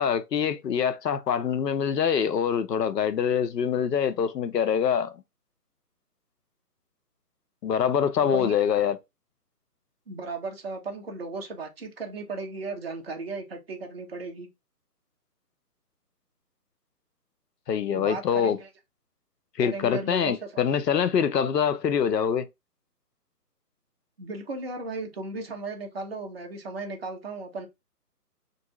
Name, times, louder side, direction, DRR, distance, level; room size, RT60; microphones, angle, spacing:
voice 1, 0.0-5.1 7.6-9.0 17.7-18.6 19.6-22.5, left 7 dB, 85° left, 0.6 m, -24 dB
voice 2, 8.2-8.6 10.1-14.5 17.9-18.7 19.6-20.5 24.2-27.7, right 3 dB, 40° right, 0.5 m, -36 dB
2.6 x 2.3 x 2.8 m
figure-of-eight pair, 155°, 47 cm